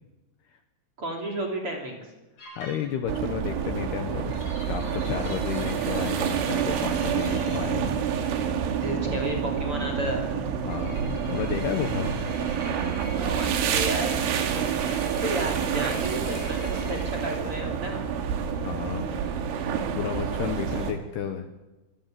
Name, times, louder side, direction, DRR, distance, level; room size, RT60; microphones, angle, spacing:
voice 1, 1.0-2.1 8.7-10.3 13.2-14.7 15.0-18.0 20.8-20.9, right 1 dB, 30° right, 1 dB, 3.2 m, -33 dB
sound 1, 2.4-3.2 4.3-7.7 10.7-17.0, left 1 dB, 35° left, 7.0 m, -46 dB
voice 2, 2.6-7.9 10.6-12.2 18.6-19.2 19.9-21.5, left 9 dB, 70° left, 7 dB, 2.7 m, -32 dB
sound 2, 3.1-20.9, right 7 dB, 75° right, 4.3 m, -28 dB
26.0 x 19.5 x 7.7 m, 1.1 s
omnidirectional pair, 5.8 m